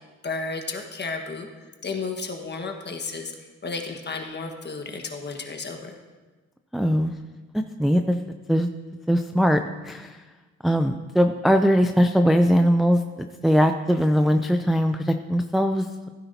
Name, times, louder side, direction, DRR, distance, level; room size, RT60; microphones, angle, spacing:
voice 1, 0.2-1.5 1.8-3.3 3.6-6.0, left 4 dB, 35° left, 4 dB, 1.4 m, -32 dB
voice 2, 6.7-7.1 7.5-8.2 8.5-8.7 9.1-10.2 10.6-16.1, equal, ahead, 6 dB, 0.4 m, -21 dB
16.0 x 10.0 x 2.8 m, 1.3 s
cardioid pair, 90°, 30 cm